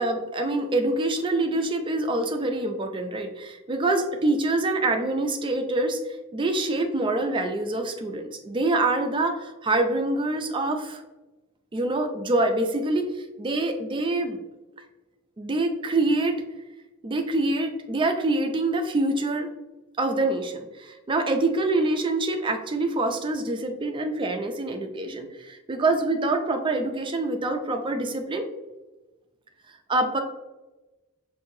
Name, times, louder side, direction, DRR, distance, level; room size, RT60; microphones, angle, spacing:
voice 1, 0.0-6.0 6.3-11.0 11.7-14.4 15.4-16.4 17.0-19.5 20.0-28.5 29.9-30.2, right 2 dB, 20° right, 5 dB, 0.4 m, -25 dB
5.4 x 2.6 x 2.7 m, 1.1 s
head